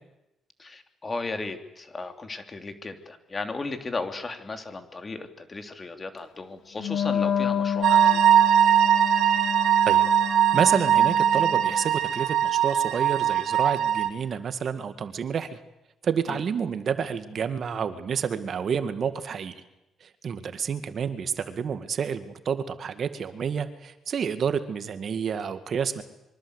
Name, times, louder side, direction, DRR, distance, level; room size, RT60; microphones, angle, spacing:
voice 1, 0.6-8.2 16.3-16.4, left 3 dB, 30° left, 7 dB, 3.1 m, -35 dB
Wind instrument woodwind instrument, 6.8-11.9, left 7 dB, 75° left, 2.8 m, -30 dB
sound 1, 7.8-14.1, right 10 dB, 75° right, 3.0 m, -21 dB
voice 2, 10.5-15.6 16.0-19.5 20.0-26.0, right 7 dB, 55° right, 10 dB, 2.0 m, -29 dB
25.5 x 24.0 x 8.2 m, 0.91 s
cardioid pair, 90°, 0 cm